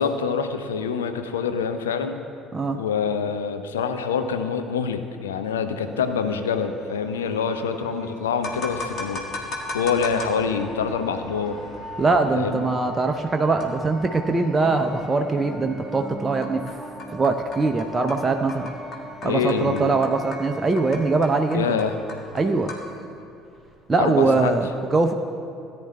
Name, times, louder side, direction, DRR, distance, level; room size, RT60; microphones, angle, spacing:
voice 1, 0.0-2.2 2.7-9.2 9.7-11.6 12.3-12.6 19.2-19.9 21.5-22.0 24.0-24.5, left 6 dB, 75° left, 8 dB, 0.5 m, -25 dB
sound 1, 5.7-23.2, equal, 5° left, 1.0 m, -42 dB
sound 2, 8.4-24.4, left 2 dB, 45° left, 1.6 m, -38 dB
voice 2, 12.0-16.6 17.1-18.7 19.2-21.8 22.3-22.7 23.9-25.1, right 3 dB, 25° right, 4 dB, 0.5 m, -22 dB
17.5 x 10.0 x 2.2 m, 2.6 s
figure-of-eight pair, 55°, 0 cm